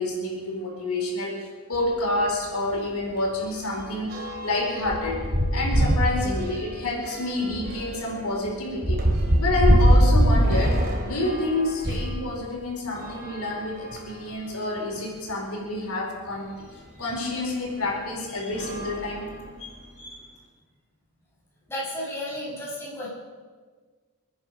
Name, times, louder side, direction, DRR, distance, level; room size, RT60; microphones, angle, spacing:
voice 1, 0.0-5.2 5.5-9.0 9.4-10.8 11.0-16.5 17.0-19.3 19.6-20.3, left 2 dB, 70° left, -2 dB, 4.6 m, -28 dB
sound 1, 1.7-1.9 2.3-2.5 2.7-12.2 12.9-14.3 15.0-15.1 15.3-15.4 17.1-17.2 17.8-18.1 18.5-19.8, equal, 45° right, 2.8 m, -24 dB
voice 2, 21.7-23.1, left 1 dB, 10° left, -6 dB, 5.8 m, -33 dB
27.5 x 9.5 x 5.5 m, 1.5 s
head